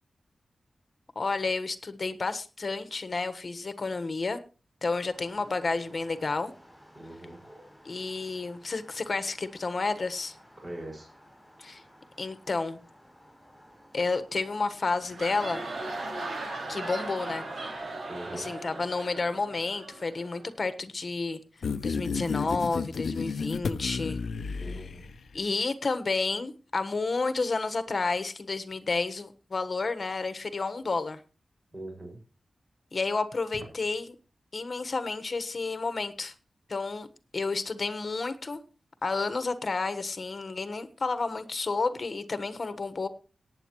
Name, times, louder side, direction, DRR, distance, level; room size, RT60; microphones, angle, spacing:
voice 1, 1.1-4.4 4.8-6.5 7.8-10.3 11.6-11.8 12.2-12.8 13.9-15.6 16.7-17.4 18.3-21.4 21.8-24.2 25.3-31.2 32.9-34.1 34.5-36.3 36.7-37.1 37.3-38.6 39.0-43.1, left 3 dB, 45° left, 11 dB, 1.3 m, -31 dB
sound 1, 5.1-17.8, equal, 5° left, 7.7 m, -56 dB
voice 2, 6.9-7.4 10.6-11.1 18.1-18.5 24.6-25.1 31.7-32.2, right 1 dB, 30° right, 0 dB, 5.7 m, -41 dB
sound 2, 15.0-20.5, right 2 dB, 75° right, 5.7 m, -38 dB
sound 3, 21.6-25.3, left 5 dB, 85° left, 0.6 m, -32 dB
18.0 x 9.3 x 3.1 m, 0.34 s
wide cardioid pair, 120°, 0 cm